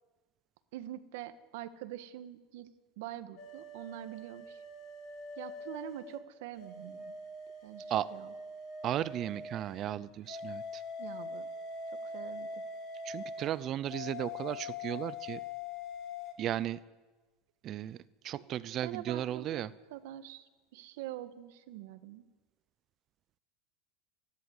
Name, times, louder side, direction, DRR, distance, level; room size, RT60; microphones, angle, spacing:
voice 1, 0.7-4.6 5.4-7.1 7.6-8.3 11.0-11.5 12.0-12.6 18.8-19.6 19.9-22.2, right 13 dB, 75° right, 10 dB, 1.4 m, -45 dB
sound 1, 3.4-6.2 6.6-9.9 10.3-16.3, left 3 dB, 45° left, 3.0 m, -43 dB
voice 2, 8.8-10.8 13.0-15.4 16.4-16.8 17.6-18.0 18.2-19.7, right 11 dB, 40° right, 17 dB, 0.5 m, -35 dB
28.5 x 11.5 x 8.1 m, 1.2 s
supercardioid pair, 140°, 0 cm